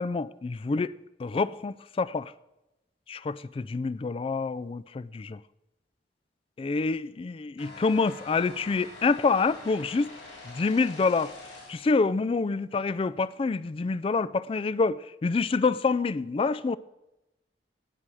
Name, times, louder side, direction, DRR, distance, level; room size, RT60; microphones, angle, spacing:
voice 1, 0.0-2.3 3.1-5.4 6.6-10.1 10.4-11.3 11.7-16.8, left 4 dB, 30° left, 0.3 m, -27 dB
sound 1, 7.6-12.0, left 2 dB, 80° left, 5.3 m, -46 dB
18.0 x 7.5 x 4.8 m
head